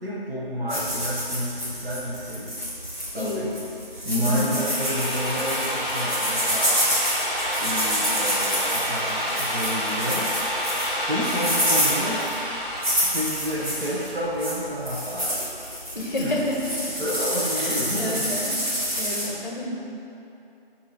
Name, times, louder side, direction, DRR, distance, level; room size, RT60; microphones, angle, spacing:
voice 1, 0.0-2.5 3.1-3.5 4.0-7.0 7.6-10.3 11.1-12.2 13.0-15.5 16.2-16.3 17.0-18.3 19.2-19.6, equal, 75° right, -7 dB, 0.9 m, -30 dB
sound 1, 0.7-19.3, equal, 50° right, 1.4 m, -28 dB
voice 2, 3.1-3.5 4.1-4.5 15.9-17.0 17.6-18.6 19.0-19.8, left 1 dB, 50° left, -1 dB, 0.6 m, -29 dB
Drill, 4.4-14.1, equal, ahead, 0.9 m, -28 dB
6.8 x 2.8 x 2.8 m, 2.8 s
figure-of-eight pair, 180°, 30 cm